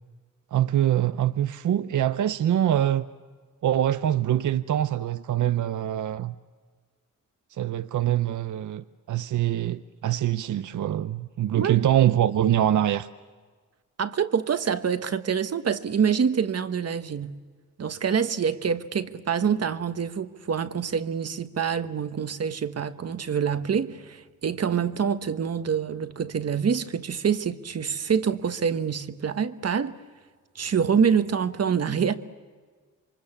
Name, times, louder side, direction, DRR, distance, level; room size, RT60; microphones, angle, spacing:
voice 1, 0.5-3.1 3.6-6.3 7.6-13.1, right 11 dB, 65° right, 0.7 m, -24 dB
voice 2, 14.0-17.4 17.8-29.9 30.5-32.1, right 7 dB, 50° right, 1.2 m, -26 dB
27.5 x 24.5 x 7.3 m
cardioid pair, 90°, 32 cm